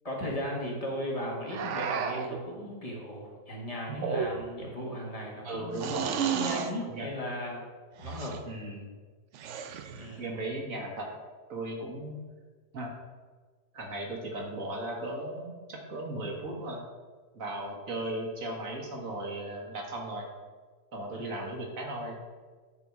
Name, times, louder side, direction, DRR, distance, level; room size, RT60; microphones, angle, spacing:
voice 1, 0.0-6.0 6.3-7.6 8.0-8.4 10.0-10.3 21.1-21.3, left 1 dB, 20° left, -2 dB, 1.6 m, -36 dB
sound 1, 1.5-2.4 3.9-4.6 5.8-6.7 8.0-8.4 9.3-10.1, right 7 dB, 85° right, 0.6 m, -32 dB
voice 2, 5.4-6.3 6.9-7.1 8.4-8.9 10.2-11.1 11.5-12.2 12.7-12.9 13.7-16.8 17.3-20.3 20.9-22.2, right 1 dB, 50° right, 0 dB, 1.6 m, -36 dB
9.5 x 4.4 x 4.7 m, 1.5 s
omnidirectional pair, 1.9 m